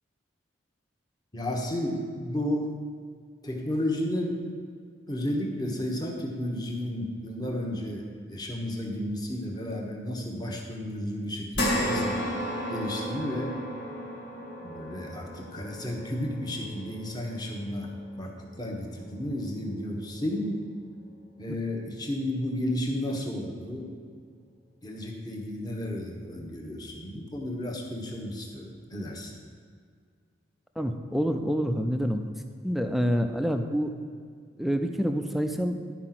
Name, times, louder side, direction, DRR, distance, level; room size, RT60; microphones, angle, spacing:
voice 1, 1.3-2.7 3.4-4.4 5.1-12.3 12.7-13.6 14.6-17.9 18.2-20.7 21.4-24.1 24.8-29.3, left 1 dB, 20° left, 0 dB, 1.1 m, -32 dB
sound 1, 11.5-20.2 20.6-20.7 22.2-22.3, equal, 70° left, 1.9 m, -34 dB
voice 2, 30.8-32.3 32.6-33.9 34.6-35.9, equal, ahead, 6 dB, 0.4 m, -27 dB
11.5 x 4.8 x 5.9 m, 2.1 s
head